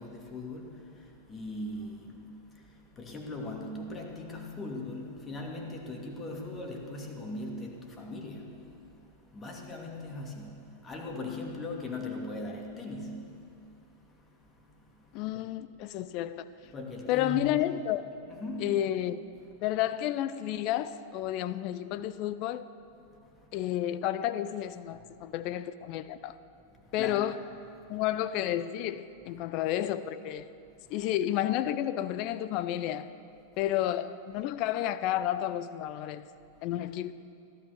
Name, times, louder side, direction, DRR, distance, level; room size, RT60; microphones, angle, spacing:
voice 1, 0.0-15.2 16.7-17.5 18.3-18.8 23.2-23.5 26.7-27.2 27.8-27.9 30.8-30.9 36.5-36.6, left 2 dB, 20° left, 2.6 m, -40 dB
voice 2, 15.1-16.5 17.1-18.1 18.6-19.2 19.6-22.7 23.5-26.3 26.9-27.4 27.9-30.5 30.9-33.1 33.6-36.3 36.6-37.1, left 12 dB, 40° left, 0.6 m, -31 dB
16.5 x 12.5 x 7.1 m
figure-of-eight pair, 90°, 0 cm